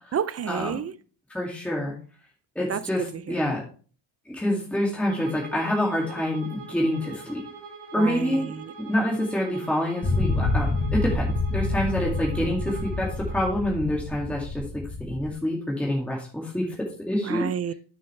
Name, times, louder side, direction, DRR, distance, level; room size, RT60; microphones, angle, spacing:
voice 1, 0.1-0.9 2.7-3.5 7.9-8.7 12.4-12.9 17.2-17.7, right 8 dB, 35° right, 0.4 m, -31 dB
voice 2, 1.3-1.9 2.6-3.6 4.3-7.4 7.9-8.4 8.8-17.5, left 1 dB, 5° left, 2.2 m, -27 dB
Bowed string instrument, 5.1-13.6, right 5 dB, 55° right, 2.9 m, -44 dB
sound 1, 10.0-15.3, left 2 dB, 25° left, 2.9 m, -27 dB
9.5 x 6.5 x 3.2 m
cardioid pair, 115°, 48 cm